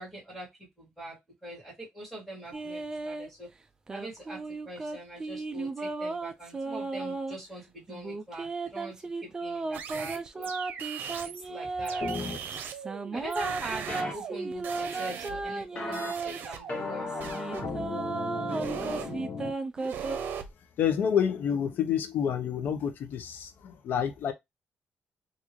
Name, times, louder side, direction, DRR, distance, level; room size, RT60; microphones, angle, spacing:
voice 1, 0.0-3.5 3.9-10.5 11.2-12.6 13.1-17.1, right 1 dB, 5° left, 2.1 m, -43 dB
sound 1, 2.5-3.3 3.9-7.4 7.9-12.2 12.7-16.5 17.1-20.2, right 3 dB, 20° right, 0.3 m, -35 dB
sound 2, 9.7-11.5 11.9-15.6 15.9-17.9 18.5-19.1 19.8-20.5, right 7 dB, 80° right, 0.7 m, -39 dB
sound 3, 12.0-12.4 13.9-14.1 15.8-16.1 16.7-19.5, left 4 dB, 40° left, 0.9 m, -35 dB
voice 2, 20.8-24.3, left 8 dB, 70° left, 0.7 m, -28 dB
3.7 x 2.6 x 3.0 m
cardioid pair, 160°, 3 cm